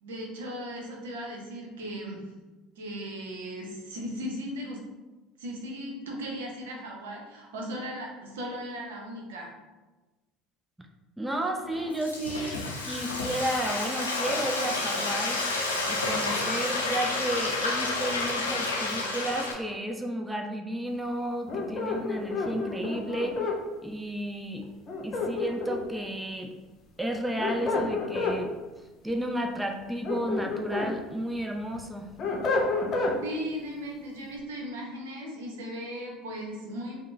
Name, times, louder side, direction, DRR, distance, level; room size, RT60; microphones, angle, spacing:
voice 1, 0.0-2.3 2.8-4.8 5.4-9.5 33.2-37.0, equal, 70° right, -1 dB, 0.8 m, -37 dB
voice 2, 11.2-15.4 15.9-23.4 23.8-24.7 25.0-26.5 27.0-28.5 29.0-32.1, right 1 dB, 10° right, 3 dB, 0.4 m, -32 dB
Frying (food), 11.6-19.5, left 2 dB, 85° left, 0.5 m, -30 dB
sound 1, 21.5-23.6 24.9-26.0 27.1-28.4 29.8-30.9 31.4-33.2, left 3 dB, 40° left, 0.7 m, -29 dB
5.0 x 2.2 x 3.3 m, 1.2 s
figure-of-eight pair, 65°, 0 cm